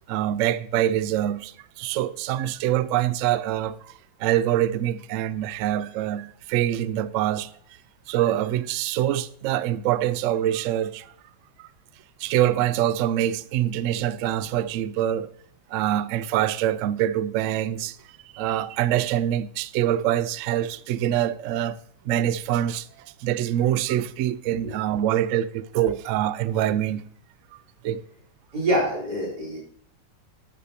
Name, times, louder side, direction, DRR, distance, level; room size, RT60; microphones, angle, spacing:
voice 1, 0.1-3.9 4.2-7.5 8.1-11.1 11.6-11.7 12.2-15.3 15.7-18.0 18.3-21.8 22.0-27.0 27.8-28.0, right 12 dB, 85° right, 0.6 m, -25 dB
voice 2, 28.5-29.7, right 1 dB, 65° right, 4.7 m, -26 dB
12.0 x 9.7 x 2.9 m
omnidirectional pair, 1.9 m